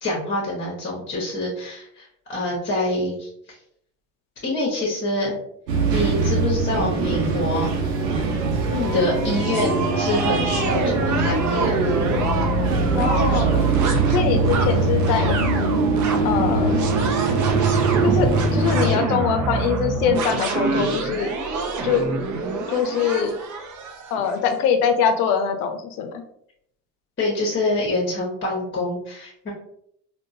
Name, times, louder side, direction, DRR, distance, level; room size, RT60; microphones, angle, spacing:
voice 1, 0.0-3.3 4.4-5.3 5.9-7.7 8.9-12.0 27.2-29.5, left 1 dB, 20° left, -3 dB, 1.2 m, -26 dB
sound 1, 5.7-18.9, right 3 dB, 80° right, 0.8 m, -22 dB
sound 2, 7.3-24.4, right 4 dB, 40° right, 0.6 m, -27 dB
voice 2, 13.0-13.6 14.1-15.4 16.2-16.8 18.0-21.3 21.8-22.0 22.7-23.4 24.1-26.2, left 7 dB, 65° left, 7 dB, 0.7 m, -23 dB
3.6 x 2.4 x 2.6 m, 0.70 s
hypercardioid pair, 65°, 49 cm